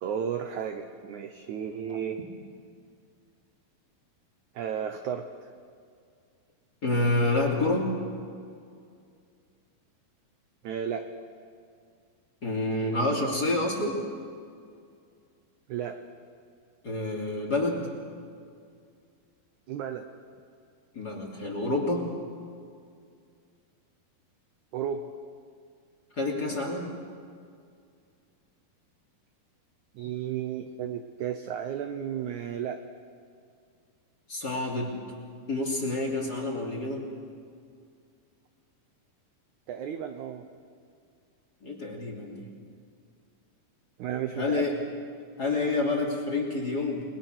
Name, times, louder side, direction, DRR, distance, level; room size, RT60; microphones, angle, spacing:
voice 1, 0.0-2.2 4.6-5.3 10.6-11.1 15.7-16.0 19.7-20.1 24.7-25.1 29.9-32.8 39.7-40.5 44.0-44.7, right 8 dB, 70° right, 7 dB, 1.9 m, -33 dB
voice 2, 6.8-7.9 12.4-14.0 16.8-17.9 20.9-22.1 26.2-26.9 34.3-34.9 35.5-37.0 41.6-42.6 44.3-44.7 45.4-47.0, left 2 dB, 25° left, -1 dB, 3.1 m, -28 dB
30.0 x 20.5 x 6.2 m, 2.2 s
omnidirectional pair, 4.4 m